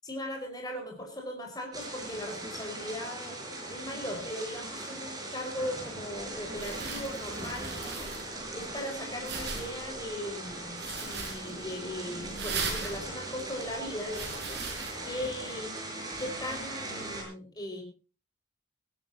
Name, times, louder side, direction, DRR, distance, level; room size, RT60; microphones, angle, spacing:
voice 1, 0.0-3.4 3.7-8.2 8.5-14.5 15.0-15.7 16.2-17.8, left 1 dB, 20° left, 1 dB, 5.3 m, -38 dB
sound 1, 1.7-17.2, right 2 dB, 20° right, 6.3 m, -40 dB
sound 2, 6.1-14.9, right 4 dB, 60° right, 6.9 m, -40 dB
20.5 x 15.5 x 2.9 m, 0.33 s
head